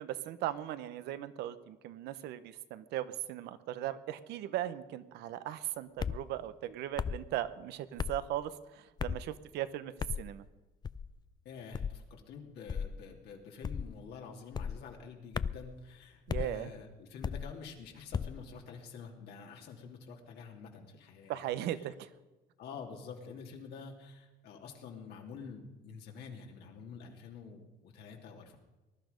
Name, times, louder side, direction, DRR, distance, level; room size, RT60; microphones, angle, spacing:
voice 1, 0.0-9.9 10.2-10.4 16.3-16.7 21.3-22.1, right 12 dB, 85° right, 14 dB, 0.9 m, -38 dB
sound 1, 6.0-6.2 7.0-7.2 8.0-8.2 9.0-9.3 10.0-10.3 10.8-11.1 11.7-12.0 12.7-13.0 13.6-14.0 14.5-14.8 15.3-15.7 16.3-16.5 17.2-17.5 18.1-18.4, left 6 dB, 25° left, 0.4 m, -35 dB
voice 2, 11.4-21.5 21.7-21.9 22.6-28.6, left 5 dB, 75° left, 1 dB, 2.9 m, -48 dB
20.0 x 11.5 x 5.2 m, 1.1 s
cardioid pair, 110°, 17 cm